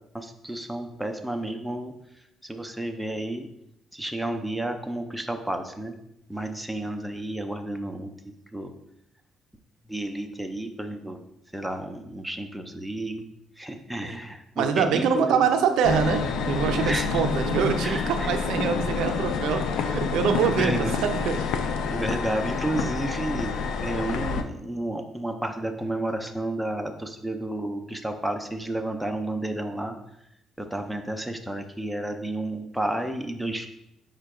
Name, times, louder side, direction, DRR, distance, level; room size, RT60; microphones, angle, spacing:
voice 1, 0.1-1.9 2.4-3.5 3.9-6.0 6.3-8.7 9.9-11.2 11.5-13.3 13.6-15.5 16.8-17.1 17.8-18.3 20.6-21.0 21.9-23.5 23.8-29.9 30.6-33.7, right 1 dB, ahead, 5 dB, 0.3 m, -31 dB
voice 2, 14.6-21.4, right 7 dB, 75° right, 6 dB, 0.4 m, -25 dB
sound 1, 15.8-24.4, left 5 dB, 75° left, 0.3 m, -28 dB
4.9 x 2.2 x 4.7 m, 0.82 s
cardioid pair, 160°, 0 cm